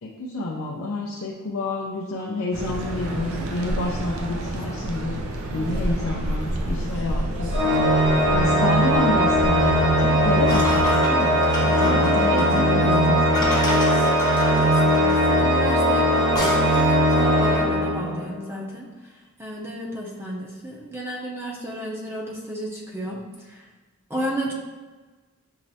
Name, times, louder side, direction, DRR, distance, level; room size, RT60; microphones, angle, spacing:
voice 1, 0.0-5.2 5.5-7.6 8.3-13.2, left 2 dB, 70° left, -3 dB, 0.5 m, -28 dB
sound 1, 2.5-10.9, right 1 dB, 85° right, 0.6 m, -30 dB
voice 2, 5.6-6.0 11.7-19.1 19.4-23.7 24.1-24.5, right 1 dB, 10° right, -2 dB, 0.6 m, -33 dB
Organ, 7.5-18.4, equal, 50° right, 1.3 m, -19 dB
sound 2, 10.5-17.0, left 1 dB, 20° left, 0.8 m, -31 dB
5.6 x 3.1 x 2.7 m, 1.3 s
head